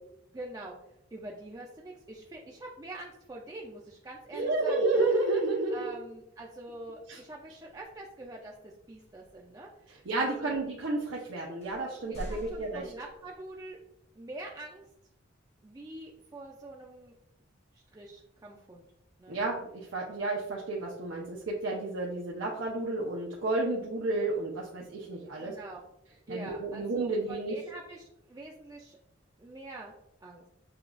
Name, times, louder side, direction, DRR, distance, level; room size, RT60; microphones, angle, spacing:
voice 1, 0.3-0.8 1.1-4.8 5.7-10.6 12.1-13.8 14.2-14.9 15.6-17.2 17.7-18.9 19.2-19.4 25.3-25.9 26.3-29.0 29.4-29.9 30.2-30.4, right 2 dB, 20° right, -1 dB, 0.3 m, -45 dB
voice 2, 4.3-5.9 7.1-7.2 10.1-12.8 19.3-25.5 26.3-27.5, right 2 dB, 85° right, -4 dB, 0.7 m, -31 dB
sound 1, 7.7-7.9 9.0-9.4 10.1-10.2 11.0-11.1 11.6-13.5, equal, 35° left, 0.7 m, -44 dB
6.7 x 2.3 x 2.4 m, 0.80 s
head